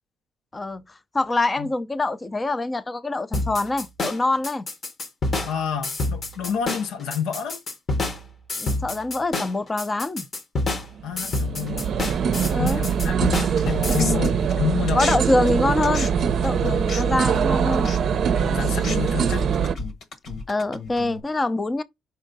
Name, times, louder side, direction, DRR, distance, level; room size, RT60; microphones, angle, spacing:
voice 1, 0.5-4.7 8.6-10.3 12.5-12.8 13.9-14.2 14.9-16.1 16.4-17.9 20.5-21.8, left 2 dB, 20° left, 0.5 m, -25 dB
sound 1, 3.3-14.0, left 2 dB, 35° left, 0.9 m, -28 dB
voice 2, 5.4-7.6 11.0-11.9 12.6-13.3 13.6-15.2 15.6-15.7 16.6-17.1 18.4-19.5, left 8 dB, 80° left, 0.6 m, -29 dB
sound 2, 11.0-19.7, right 7 dB, 55° right, 0.6 m, -23 dB
sound 3, 13.6-15.2 15.5-21.2, left 3 dB, 65° left, 1.4 m, -34 dB
5.4 x 4.4 x 3.9 m
cardioid pair, 135°, 0 cm